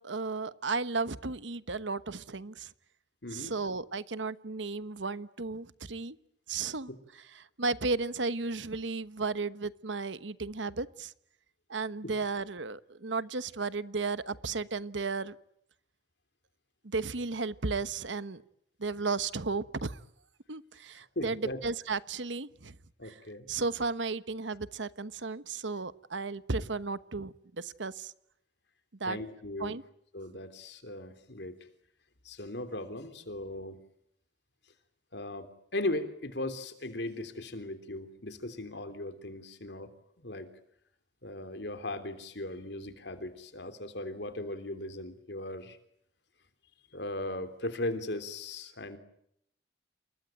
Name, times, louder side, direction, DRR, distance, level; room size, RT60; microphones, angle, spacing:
voice 1, 0.0-2.7 3.3-6.2 6.5-6.9 7.6-11.1 11.7-15.3 16.8-18.4 18.8-20.0 20.5-22.7 23.0-23.2 23.5-28.1 29.0-29.2 29.6-29.8, right 4 dB, 80° right, 15 dB, 1.2 m, -34 dB
voice 2, 3.2-3.5 6.9-7.0 20.9-21.6 23.0-23.5 29.0-29.8 30.1-31.6 32.2-33.8 35.1-39.9 40.2-40.5 41.2-45.8 46.9-49.0, left 1 dB, 65° left, 9 dB, 3.3 m, -38 dB
29.0 x 22.0 x 9.2 m, 0.75 s
head